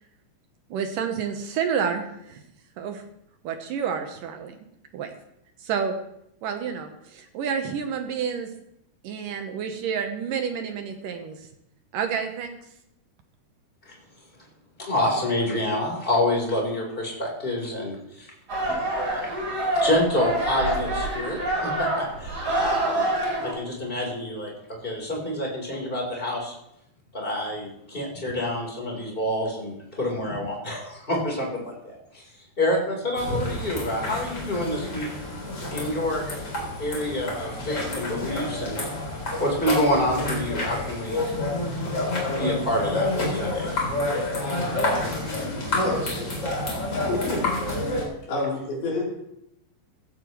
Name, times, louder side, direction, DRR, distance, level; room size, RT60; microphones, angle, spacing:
voice 1, 0.7-2.4 2.8-3.0 3.4-4.6 4.9-5.1 5.6-6.0 6.4-8.5 9.0-11.4 11.9-12.6, right 7 dB, 70° right, 5 dB, 2.4 m, -29 dB
voice 2, 14.8-18.3 18.6-19.3 19.7-23.0 23.5-24.5 24.8-26.5 27.1-32.2 32.6-35.1 35.7-36.4 36.8-38.8 39.4-41.3 42.4-43.7 45.1-45.2 45.6-45.7, left 1 dB, 15° left, -1 dB, 3.7 m, -27 dB
sound 1, 18.5-23.5, right 1 dB, 40° right, 5.7 m, -26 dB
sound 2, 33.2-48.0, left 2 dB, 30° left, 4.2 m, -29 dB
voice 3, 45.7-47.5 48.2-49.0, left 2 dB, 85° left, -4 dB, 5.9 m, -29 dB
15.5 x 15.5 x 3.1 m, 0.78 s
omnidirectional pair, 4.3 m